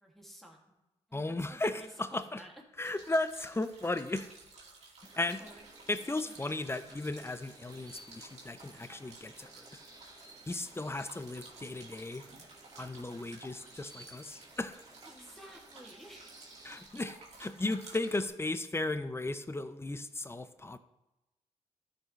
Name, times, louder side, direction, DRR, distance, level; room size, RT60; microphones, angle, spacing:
voice 1, 0.0-0.6 1.1-2.6 5.4-5.6 6.2-6.4 15.0-16.3, equal, ahead, -1 dB, 2.3 m, -52 dB
voice 2, 1.1-2.4 2.8-4.3 5.2-5.4 5.9-9.5 10.5-12.2 12.8-14.7 16.6-20.8, left 2 dB, 20° left, 12 dB, 0.6 m, -35 dB
sound 1, 2.8-18.3, right 3 dB, 60° right, 2.3 m, -54 dB
sound 2, 5.0-16.9, right 2 dB, 35° right, 1.9 m, -56 dB
12.5 x 5.3 x 3.2 m, 0.98 s
cardioid pair, 55°, 13 cm